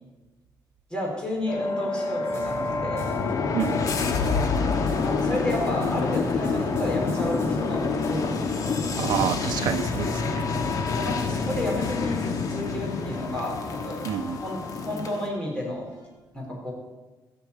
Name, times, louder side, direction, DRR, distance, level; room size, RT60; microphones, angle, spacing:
voice 1, 0.9-3.1 5.0-9.3 10.9-14.1 14.4-14.6 14.8-15.9 16.3-16.7, left 1 dB, 10° left, -2 dB, 4.3 m, -31 dB
sound 1, 1.5-15.3, left 4 dB, 55° left, 1.4 m, -27 dB
sound 2, 2.2-16.1, equal, 35° left, 3.5 m, -42 dB
voice 2, 9.0-10.5 14.0-14.4, right 9 dB, 85° right, 6 dB, 0.6 m, -28 dB
14.5 x 5.9 x 8.5 m, 1.2 s
cardioid pair, 145°, 7 cm